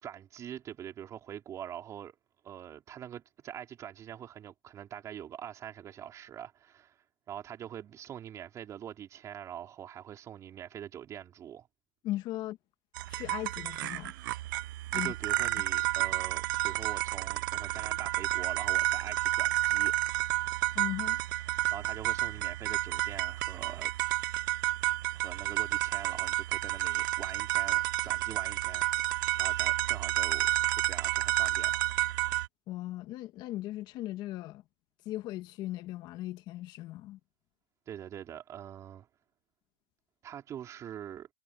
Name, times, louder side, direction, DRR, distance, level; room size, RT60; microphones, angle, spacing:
voice 1, 0.0-2.1 2.4-7.0 7.3-11.7 14.9-20.0 21.7-23.9 25.1-28.9 29.4-31.8 37.9-39.1 40.2-41.3, right 10 dB, 25° right, 4.4 m, -44 dB
voice 2, 12.0-12.6 13.1-14.1 14.9-15.1 20.7-21.2 32.7-34.6 35.0-37.2, left 15 dB, 40° left, 1.7 m, -38 dB
sound 1, 13.0-32.5, right 17 dB, 65° right, 0.8 m, -30 dB
supercardioid pair, 140°, 12 cm